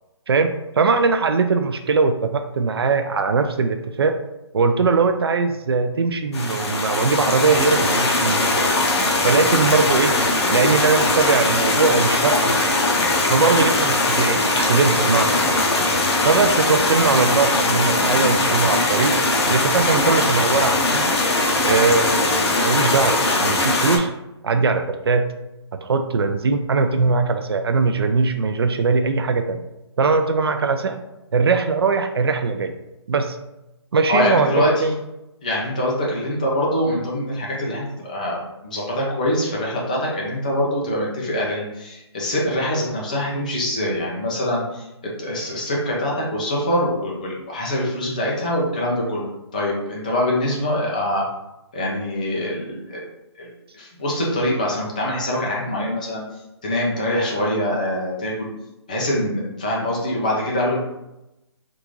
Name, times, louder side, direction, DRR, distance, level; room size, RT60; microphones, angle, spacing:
voice 1, 0.3-4.1 4.5-8.6 9.2-10.2 10.5-12.8 13.3-15.6 16.2-19.1 19.5-21.0 21.6-24.1 24.4-25.3 25.8-29.6 30.0-31.0 31.3-32.7 33.1-33.4 33.9-35.0, right 4 dB, 60° right, 7 dB, 0.4 m, -20 dB
sound 1, 6.3-24.0, left 2 dB, 70° left, 0.8 m, -20 dB
voice 2, 34.1-34.9 35.4-44.9 45.2-49.2 49.5-51.3 51.7-53.0 53.4-53.5 53.7-56.2 56.6-58.5 58.9-60.8, left 1 dB, 15° left, -3 dB, 0.5 m, -24 dB
3.5 x 2.5 x 3.0 m, 0.93 s
hypercardioid pair, 175°, 15 cm